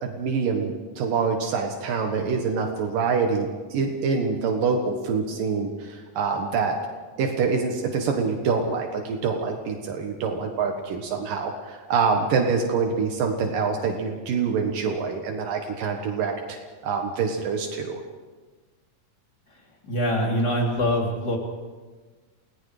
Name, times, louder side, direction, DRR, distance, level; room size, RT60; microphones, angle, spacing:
voice 1, 0.0-6.7 7.2-16.6 16.8-18.0, right 5 dB, 75° right, 2 dB, 3.1 m, -25 dB
voice 2, 19.8-21.4, equal, 30° left, -1 dB, 4.1 m, -24 dB
29.5 x 18.5 x 5.0 m, 1.3 s
omnidirectional pair, 4.0 m